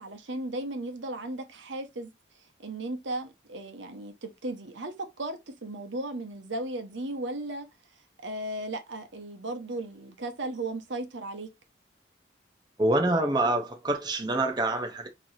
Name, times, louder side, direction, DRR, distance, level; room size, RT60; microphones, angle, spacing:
voice 1, 0.0-2.1 2.6-7.7 7.9-11.5, right 2 dB, 75° right, 0.9 m, -36 dB
voice 2, 12.8-15.1, right 2 dB, 20° right, 0.6 m, -26 dB
4.3 x 3.0 x 2.7 m
head